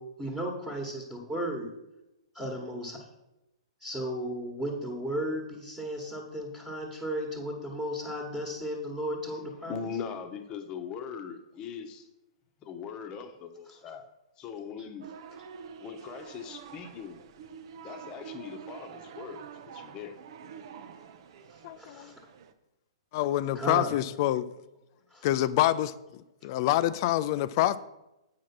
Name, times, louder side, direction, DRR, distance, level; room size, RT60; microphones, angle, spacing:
voice 1, 0.0-1.7 2.3-3.0 3.8-9.8 13.7-13.9 14.8-14.9 21.5-22.2 23.5-23.9 25.1-25.3, equal, 5° right, 1.5 m, -35 dB
voice 2, 9.7-12.1 12.6-14.1 14.4-15.1 15.8-17.2 17.8-20.2, left 6 dB, 25° left, 1.0 m, -40 dB
sound 1, 15.0-22.5, right 7 dB, 55° right, 0.7 m, -47 dB
voice 3, 21.6-22.1 23.1-24.5 25.2-27.8, left 14 dB, 45° left, 0.4 m, -27 dB
8.3 x 4.9 x 6.0 m
hypercardioid pair, 135°, 3 cm